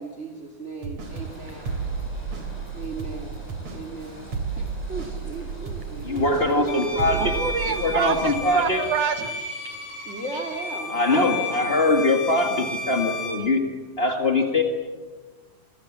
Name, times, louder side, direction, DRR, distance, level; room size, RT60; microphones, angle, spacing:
voice 1, 0.0-1.8 2.7-3.5 3.7-4.3 4.5-7.2 10.0-11.8, right 2 dB, 30° right, 1 dB, 1.4 m, -36 dB
sound 1, 0.8-10.0 10.3-10.4, right 5 dB, 45° right, 3.9 m, -34 dB
sound 2, 1.0-8.7, left 1 dB, 10° left, 6.3 m, -44 dB
voice 2, 6.0-7.3 7.8-8.8 10.9-13.6 14.0-14.6, left 2 dB, 45° left, 3 dB, 0.7 m, -22 dB
Bowed string instrument, 6.7-13.5, left 2 dB, 85° left, 5.8 m, -33 dB
voice 3, 7.2-9.4, right 8 dB, 65° right, 9 dB, 1.6 m, -27 dB
25.0 x 24.5 x 7.4 m, 1.3 s
omnidirectional pair, 4.4 m